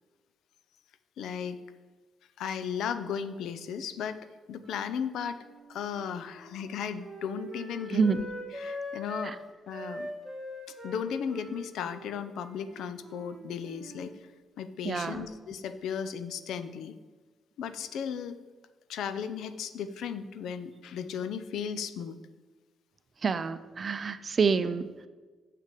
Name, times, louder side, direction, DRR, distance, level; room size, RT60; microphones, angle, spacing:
voice 1, 1.2-1.6 2.4-4.2 4.5-5.4 5.7-8.3 8.5-9.4 9.7-10.1 10.8-14.1 14.6-16.9 17.6-18.4 18.9-22.2, left 7 dB, 80° left, 12 dB, 0.6 m, -35 dB
Wind instrument woodwind instrument, 5.4-9.3 9.7-14.1, left 1 dB, 5° right, 2.8 m, -42 dB
voice 2, 7.9-8.3 9.2-9.4 14.8-15.3 23.2-25.1, right 5 dB, 40° right, 13 dB, 0.5 m, -28 dB
6.8 x 6.2 x 7.6 m, 1.4 s
cardioid pair, 90°, 0 cm